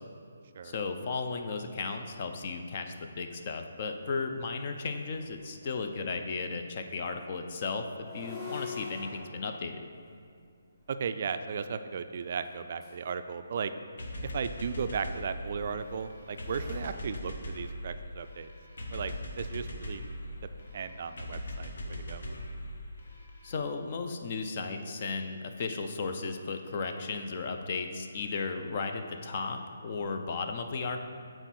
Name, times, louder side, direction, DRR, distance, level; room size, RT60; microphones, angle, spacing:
voice 1, 0.6-7.8 8.1-9.8 23.4-31.0, left 4 dB, 40° left, 5 dB, 0.6 m, -35 dB
sound 1, 4.0-6.0 7.8-11.1 12.4-13.1 14.5-18.0, left 5 dB, 10° left, 1.1 m, -47 dB
voice 2, 10.9-13.7 14.3-18.5 18.9-20.0 20.7-21.7 22.1-22.2, right 6 dB, 45° right, 9 dB, 0.3 m, -35 dB
sound 2, 14.0-23.5, left 1 dB, 65° left, 1.1 m, -40 dB
7.9 x 4.5 x 4.3 m, 2.3 s
hypercardioid pair, 160°, 0 cm